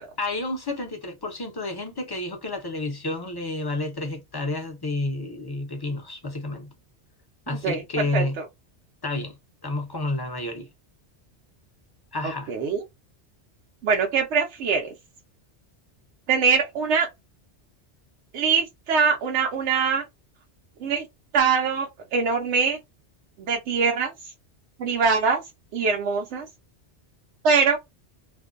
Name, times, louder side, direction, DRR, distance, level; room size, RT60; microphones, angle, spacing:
voice 1, 0.2-6.7 7.5-8.4 9.0-10.7 12.1-12.5, left 2 dB, 30° left, 0.4 m, -30 dB
voice 2, 7.6-8.5 12.5-12.8 13.8-14.9 16.3-17.1 18.3-20.0 20.8-21.1 21.3-22.8 23.4-24.3 24.8-25.4 25.7-26.5 27.4-27.8, right 5 dB, 80° right, 0.9 m, -23 dB
2.5 x 2.2 x 2.3 m
omnidirectional pair, 1.2 m